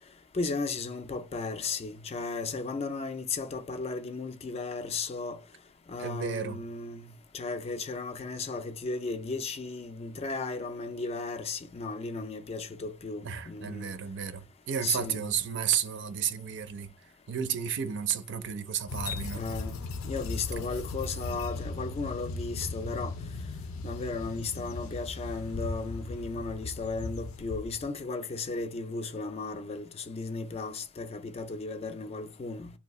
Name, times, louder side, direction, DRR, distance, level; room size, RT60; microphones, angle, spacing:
voice 1, 0.3-5.4 5.9-7.1 7.3-13.9 14.8-15.3 19.3-23.1 23.8-32.7, left 3 dB, 30° left, 0.3 m, -35 dB
voice 2, 6.0-6.6 13.2-19.4, right 8 dB, 55° right, 0.5 m, -32 dB
sound 1, 18.9-27.9, left 3 dB, 90° left, 0.5 m, -37 dB
2.7 x 2.3 x 4.0 m
head